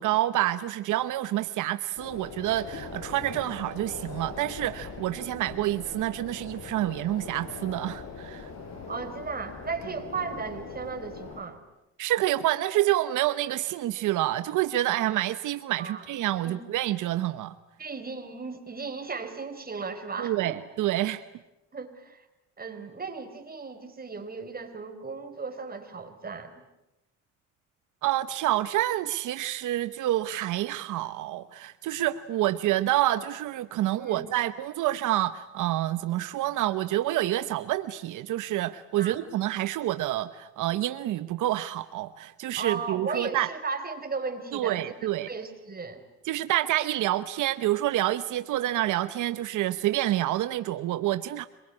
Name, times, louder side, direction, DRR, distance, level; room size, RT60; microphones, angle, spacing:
voice 1, 0.0-8.5 12.0-17.5 20.2-21.2 28.0-43.5 44.5-45.3 46.3-51.5, right 14 dB, 85° right, 12 dB, 1.0 m, -28 dB
sound 1, 2.0-11.4, left 4 dB, 60° left, 6.3 m, -41 dB
voice 2, 8.9-11.6 15.8-16.0 16.4-16.6 17.8-20.6 21.7-22.2 22.6-26.6 34.0-34.2 39.0-39.2 42.6-44.8 45.3-46.0, right 4 dB, 30° right, 7 dB, 4.4 m, -36 dB
27.0 x 22.0 x 9.8 m, 0.94 s
cardioid pair, 90°, 30 cm